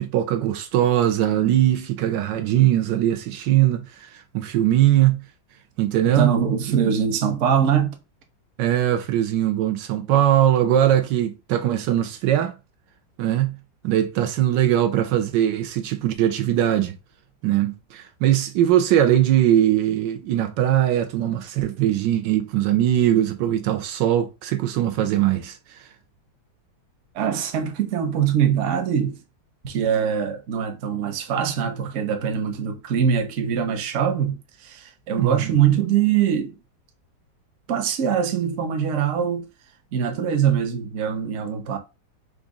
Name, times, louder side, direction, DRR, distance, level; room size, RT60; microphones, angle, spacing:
voice 1, 0.0-5.2 5.8-6.3 8.6-12.5 13.2-13.5 13.8-16.9 17.4-25.9 35.2-35.6, right 12 dB, 80° right, 1.2 m, -21 dB
voice 2, 6.2-7.9 27.1-29.2 29.6-36.6 37.7-39.4 39.9-41.8, right 8 dB, 55° right, 0.9 m, -23 dB
5.0 x 2.5 x 3.5 m
omnidirectional pair, 2.0 m